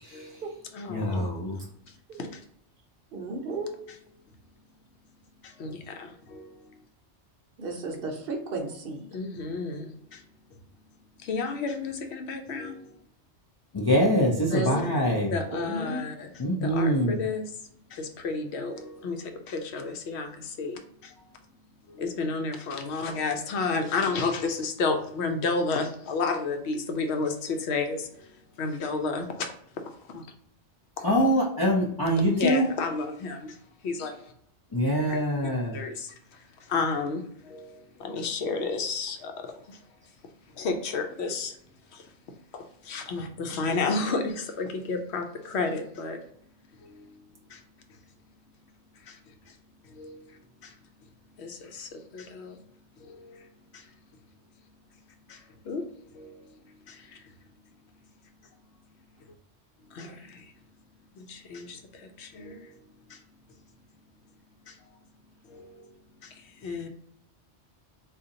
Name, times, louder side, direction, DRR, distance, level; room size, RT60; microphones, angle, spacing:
voice 1, 0.1-0.4 0.7-1.2 1.9-2.4 5.4-6.6 9.1-10.2 11.2-13.0 14.5-15.0 15.3-16.3 16.6-17.6 17.9-21.3 21.9-28.3 28.6-29.5 29.9-30.2 31.0-31.1 32.3-34.3 35.1-39.8 40.5-41.6 41.9-42.0 42.5-46.2 46.8-47.2 47.5-47.6 49.0-49.2 49.5-49.6 49.8-50.7 51.4-52.6 53.0-53.5 53.7-53.9 55.3-55.8 56.1-56.5 56.9-57.3 59.9-60.5 61.1-62.8 63.1-63.2 64.7-65.0 65.5-65.9 66.2-66.9, left 4 dB, 75° left, 5 dB, 0.8 m, -32 dB
voice 2, 0.9-1.6 13.7-15.3 16.4-17.2 31.0-32.6 34.7-35.8, equal, 40° left, -4 dB, 0.3 m, -24 dB
voice 3, 3.1-3.8 7.6-9.1 14.5-14.9 15.5-16.0 44.0-44.1, right 2 dB, 60° right, 2 dB, 0.8 m, -34 dB
3.8 x 2.4 x 2.6 m, 0.67 s
omnidirectional pair, 1.2 m